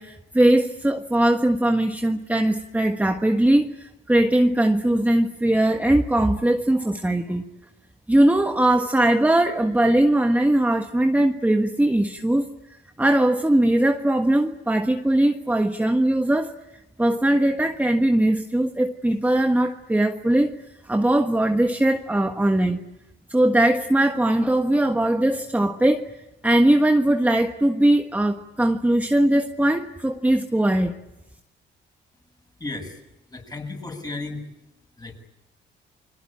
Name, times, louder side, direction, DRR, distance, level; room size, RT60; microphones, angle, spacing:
voice 1, 0.0-7.5 8.1-12.5 13.0-16.5 17.0-20.5 20.8-22.8 23.3-26.1 26.4-30.9, right 1 dB, 10° right, 5 dB, 1.4 m, -20 dB
voice 2, 32.6-33.0 33.3-34.4 35.0-35.2, left 2 dB, 20° left, 4 dB, 7.0 m, -34 dB
30.0 x 22.0 x 8.8 m, 0.95 s
cardioid pair, 90°, 20 cm